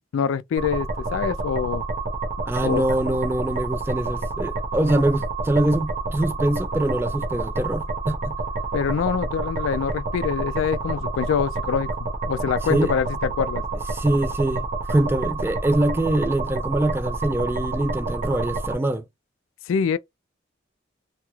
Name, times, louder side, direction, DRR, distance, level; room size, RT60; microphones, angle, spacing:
voice 1, 0.1-1.8 2.6-2.8 8.7-11.9 12.2-13.6 19.7-20.0, left 7 dB, 85° left, 0.3 m, -25 dB
sound 1, 0.6-18.7, right 3 dB, 35° right, 0.9 m, -29 dB
voice 2, 2.5-8.4 12.7-12.9 13.9-19.0, right 1 dB, 10° right, 0.3 m, -24 dB
2.9 x 2.3 x 3.0 m
head